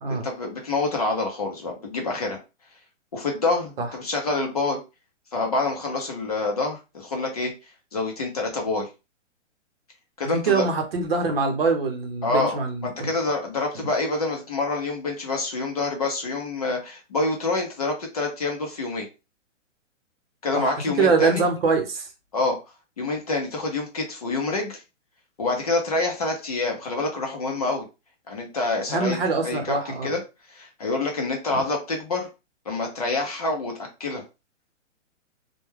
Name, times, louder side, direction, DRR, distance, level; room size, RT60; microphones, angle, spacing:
voice 1, 0.1-2.4 3.1-4.8 5.3-7.5 7.9-8.9 10.2-10.6 12.2-19.1 20.4-21.4 22.3-22.6 23.0-24.8 25.4-27.9 28.3-29.2 29.4-29.7 30.0-30.2 30.5-32.3 32.7-34.2, left 3 dB, 30° left, 0.5 m, -27 dB
voice 2, 10.2-13.1 13.7-13.9 20.5-22.1 28.9-30.2 31.5-31.7, right 4 dB, 50° right, 0.8 m, -24 dB
2.2 x 2.2 x 3.1 m
hypercardioid pair, 170°, 38 cm